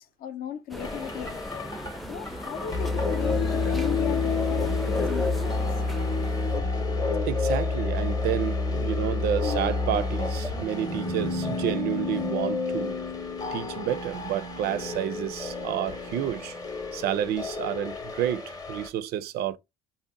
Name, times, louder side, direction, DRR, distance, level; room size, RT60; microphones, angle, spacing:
voice 1, 0.0-5.6, left 9 dB, 60° left, 0.5 m, -37 dB
sound 1, 0.7-6.6, equal, ahead, 0.4 m, -38 dB
sound 2, 0.8-18.9, left 3 dB, 20° left, 0.7 m, -29 dB
voice 2, 7.2-12.9 13.5-16.6 16.9-19.6, right 11 dB, 70° right, 0.4 m, -30 dB
2.7 x 2.1 x 3.5 m
cardioid pair, 110°, 17 cm